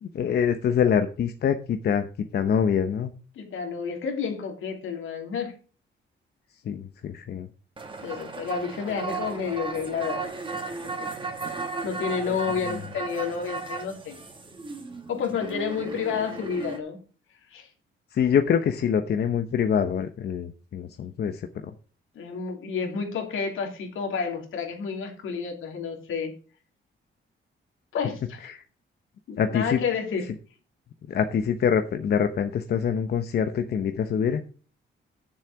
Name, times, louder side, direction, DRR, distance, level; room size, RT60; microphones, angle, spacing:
voice 1, 0.0-2.1 2.3-3.1 6.7-7.5 18.1-21.5 28.5-28.6 29.4-29.8 31.1-34.4, left 7 dB, 50° left, 8 dB, 0.8 m, -25 dB
voice 2, 3.3-5.6 8.0-10.4 11.0-11.1 11.4-11.5 11.8-14.2 15.1-17.0 17.5-17.7 22.1-26.4 27.9-28.4 29.3-30.3, left 6 dB, 80° left, 3 dB, 2.9 m, -30 dB
sound 1, 7.8-16.8, right 4 dB, 25° right, 1.7 m, -35 dB
9.6 x 7.2 x 4.8 m, 0.38 s
cardioid pair, 150°, 20 cm